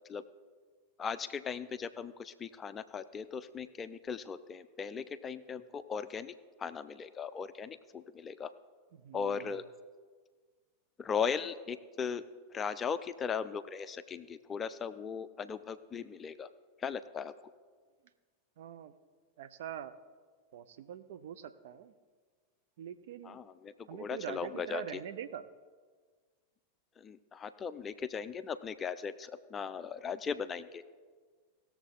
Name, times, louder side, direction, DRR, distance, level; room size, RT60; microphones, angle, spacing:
voice 1, 1.0-6.3 6.6-8.5 9.1-9.6 11.0-12.2 12.5-16.5 16.8-17.3 23.2-25.0 27.0-30.8, left 6 dB, 20° left, 13 dB, 0.4 m, -38 dB
voice 2, 8.9-9.6 18.6-18.9 19.4-19.9 20.5-21.9 22.8-23.4 23.9-25.4, right 9 dB, 55° right, 11 dB, 0.5 m, -44 dB
18.0 x 7.1 x 3.8 m, 1.5 s
figure-of-eight pair, 90°, 0 cm